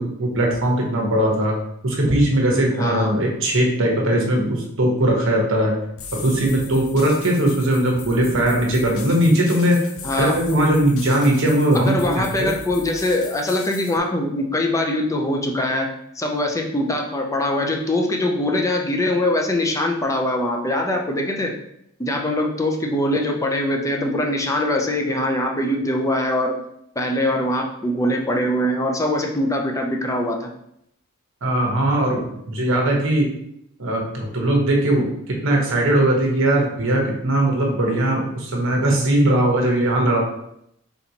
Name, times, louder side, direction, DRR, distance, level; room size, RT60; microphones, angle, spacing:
voice 1, 0.0-1.5 1.8-5.7 6.2-9.9 10.2-12.5 31.4-33.3 33.8-35.0 35.4-40.2, right 1 dB, 65° right, -1 dB, 1.1 m, -19 dB
voice 2, 2.8-3.2 10.0-10.4 11.7-21.5 22.0-26.6 27.0-30.5, left 1 dB, 15° left, 1 dB, 0.5 m, -22 dB
sound 1, 6.0-14.0, left 5 dB, 70° left, 0.5 m, -37 dB
4.2 x 4.0 x 2.9 m, 0.76 s
head